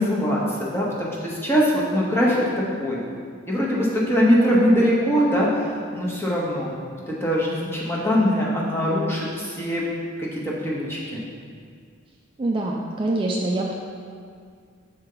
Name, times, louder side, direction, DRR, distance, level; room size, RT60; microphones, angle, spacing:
voice 1, 0.0-2.4 2.8-3.0 3.5-6.7 7.1-9.8 10.2-11.2, equal, 10° left, -5 dB, 0.9 m, -22 dB
voice 2, 12.4-13.7, right 2 dB, 25° right, -2 dB, 0.3 m, -24 dB
6.6 x 4.4 x 3.8 m, 2.1 s
head